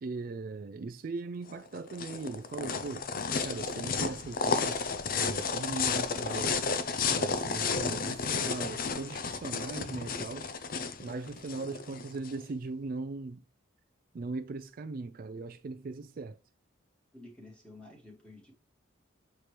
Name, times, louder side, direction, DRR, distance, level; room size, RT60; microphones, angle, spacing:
voice 1, 0.0-3.1 3.4-4.8 5.1-6.6 7.1-10.5 11.0-13.4 14.1-16.4, right 3 dB, 45° right, 0.4 m, -39 dB
sound 1, 1.5-12.3, left 5 dB, 45° left, 0.6 m, -32 dB
voice 2, 17.1-18.5, left 2 dB, 5° left, 1.9 m, -52 dB
6.7 x 4.4 x 3.2 m
head